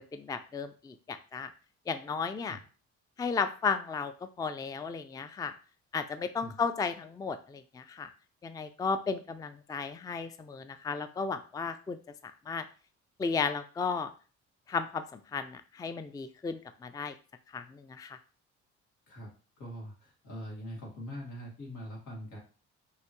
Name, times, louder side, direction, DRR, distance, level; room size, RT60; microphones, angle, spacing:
voice 1, 0.0-1.5 1.9-2.6 3.2-4.1 4.4-5.5 5.9-8.1 8.4-12.0 12.2-12.6 13.2-14.1 14.7-17.1 17.5-18.2, left 5 dB, 15° left, 10 dB, 0.3 m, -34 dB
voice 2, 19.6-22.4, equal, 85° left, -2 dB, 2.0 m, -43 dB
5.5 x 2.8 x 3.0 m, 0.37 s
cardioid pair, 90°, 30 cm